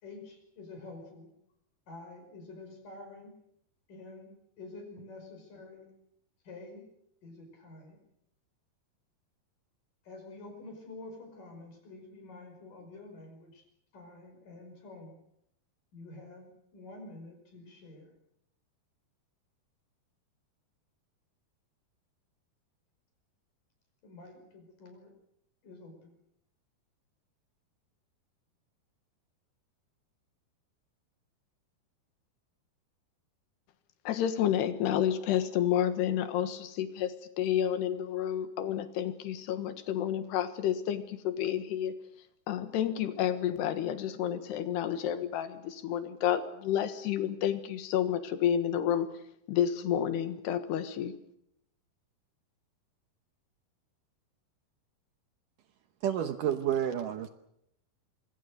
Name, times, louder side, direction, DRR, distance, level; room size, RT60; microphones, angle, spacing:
voice 1, 0.0-1.3 1.9-3.4 3.9-5.9 6.4-6.9 7.2-8.0 10.0-13.6 13.9-15.2 15.9-18.1 24.0-25.1 25.6-26.2, left 2 dB, 55° left, 5 dB, 6.8 m, -48 dB
voice 2, 34.1-41.9 42.5-49.1 49.5-51.1, left 10 dB, 85° left, 10 dB, 3.6 m, -30 dB
voice 3, 56.0-57.3, right 10 dB, 70° right, 9 dB, 2.2 m, -30 dB
24.5 x 24.5 x 6.5 m, 0.76 s
omnidirectional pair, 4.7 m